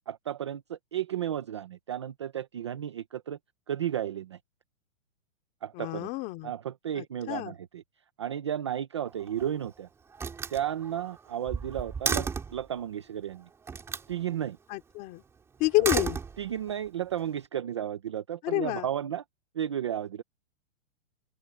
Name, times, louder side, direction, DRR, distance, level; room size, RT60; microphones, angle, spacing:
voice 1, 0.1-3.4 3.7-4.4 5.6-6.1 6.4-7.8 8.2-9.9 10.5-13.5 14.1-14.6 16.4-19.2 19.5-20.2, right 10 dB, 25° right, 0.6 m, -33 dB
voice 2, 5.7-6.5 6.9-7.5 14.7-15.2 15.6-16.2 18.4-18.9, left 21 dB, 20° left, 3.2 m, -29 dB
Slam, 9.1-9.7 10.1-12.6 13.7-14.1 15.6-16.8, right 5 dB, 5° right, 3.0 m, -33 dB
open air
hypercardioid pair, 175°, 38 cm